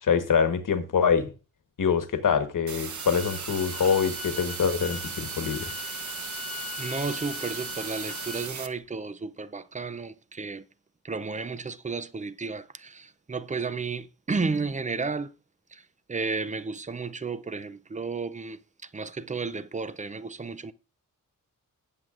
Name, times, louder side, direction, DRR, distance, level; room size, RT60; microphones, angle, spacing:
voice 1, 0.0-1.3 1.8-5.7, left 6 dB, 70° left, 1.3 m, -25 dB
sound 1, 2.7-8.7, right 6 dB, 60° right, 0.9 m, -37 dB
Bowed string instrument, 2.8-8.5, left 6 dB, ahead, 1.4 m, -40 dB
voice 2, 6.8-10.7 11.0-15.3 15.7-15.8 16.1-20.7, right 4 dB, 25° right, 0.5 m, -33 dB
18.0 x 7.5 x 2.5 m
wide cardioid pair, 140°, 33 cm